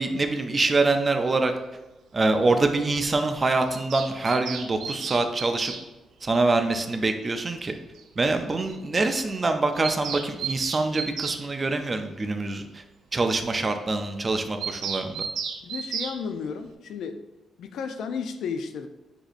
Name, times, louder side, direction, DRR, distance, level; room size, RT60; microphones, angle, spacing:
voice 1, 0.0-1.5 2.1-5.7 6.2-7.8 8.2-12.8 13.1-15.2, right 3 dB, 20° right, 6 dB, 0.3 m, -25 dB
Bird vocalization bird call bird song, 3.7-5.8 7.3-7.4 7.6-7.7 8.0-8.1 8.4-8.5 8.7-8.8 9.0-9.2 9.4-11.4 14.6-16.2, right 6 dB, 85° right, 0.5 m, -33 dB
voice 2, 15.6-17.2 17.6-18.9, left 6 dB, 75° left, 8 dB, 0.4 m, -33 dB
7.7 x 2.7 x 2.5 m, 1.1 s
wide cardioid pair, 180°, 0 cm